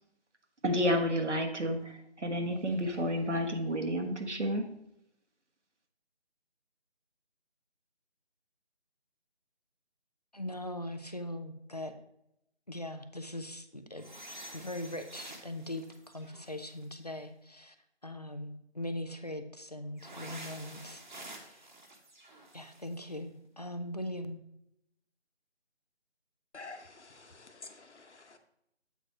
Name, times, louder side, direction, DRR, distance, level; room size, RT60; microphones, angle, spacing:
voice 1, 0.6-4.6, equal, 90° right, 4 dB, 1.4 m, -30 dB
voice 2, 10.3-11.9 12.7-14.1 14.5-17.8 18.0-21.7 22.5-24.4, left 1 dB, 35° left, 8 dB, 0.5 m, -40 dB
sound 1, 14.0-17.0 20.0-23.1, right 1 dB, 45° right, 1.2 m, -49 dB
voice 3, 26.5-28.4, left 3 dB, 80° left, 7 dB, 1.2 m, -49 dB
7.9 x 4.5 x 5.0 m, 0.79 s
figure-of-eight pair, 165°, 34 cm